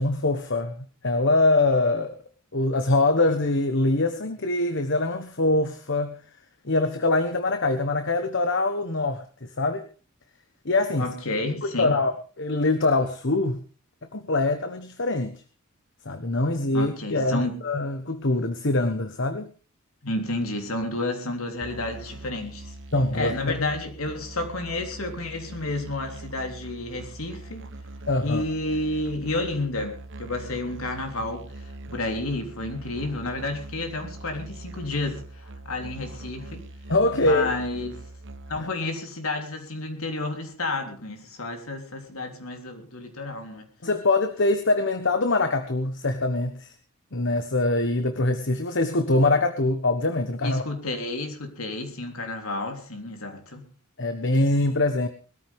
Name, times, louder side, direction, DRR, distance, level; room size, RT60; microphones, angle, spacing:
voice 1, 0.0-2.1 2.5-6.2 6.6-9.2 9.6-9.8 10.6-11.1 11.8-13.6 14.1-15.4 16.0-19.5 22.9-23.3 28.1-28.4 36.9-37.5 38.6-38.7 43.8-46.7 47.1-50.6 54.0-55.1, left 2 dB, 60° left, 1.3 m, -23 dB
voice 2, 11.0-12.0 16.7-17.6 20.0-22.7 23.1-27.7 28.2-36.6 37.1-38.0 38.5-43.7 50.4-53.7, left 2 dB, 85° left, 3.5 m, -31 dB
Musical instrument, 21.6-38.6, right 2 dB, 60° right, 1.0 m, -42 dB
21.0 x 14.0 x 3.6 m
head